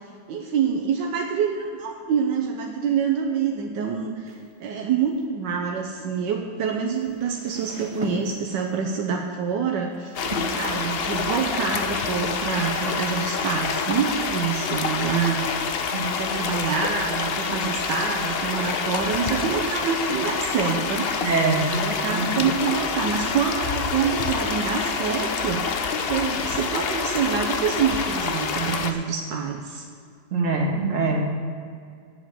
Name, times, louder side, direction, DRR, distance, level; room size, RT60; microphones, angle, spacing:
voice 1, 0.3-4.3 4.6-10.1 10.5-15.4 16.0-21.1 21.7-29.8, right 6 dB, 80° right, 2 dB, 1.4 m, -26 dB
sound 1, 4.3-4.5 6.9-8.8 9.9-10.4, right 1 dB, 20° right, 1.4 m, -36 dB
sound 2, 10.1-28.9, left 5 dB, 80° left, 0.5 m, -27 dB
voice 2, 21.2-21.6 22.0-22.3 30.3-31.4, right 3 dB, 45° right, -2 dB, 2.0 m, -23 dB
8.5 x 7.6 x 7.5 m, 2.3 s
omnidirectional pair, 1.9 m